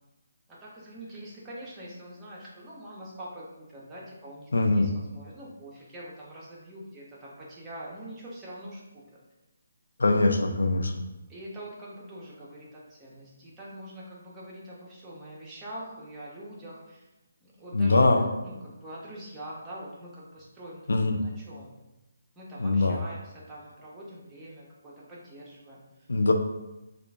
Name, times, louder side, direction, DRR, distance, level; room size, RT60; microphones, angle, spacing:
voice 1, 0.5-9.1 10.0-10.3 11.3-17.0 17.4-21.8 22.4-25.8, right 1 dB, 15° right, -6 dB, 0.8 m, -44 dB
voice 2, 4.5-4.9 10.0-10.9 17.7-18.2 20.9-21.2 22.6-23.0 26.1-26.3, left 2 dB, 75° left, 4 dB, 0.4 m, -22 dB
4.8 x 2.4 x 2.3 m, 1.0 s
figure-of-eight pair, 150°, 0 cm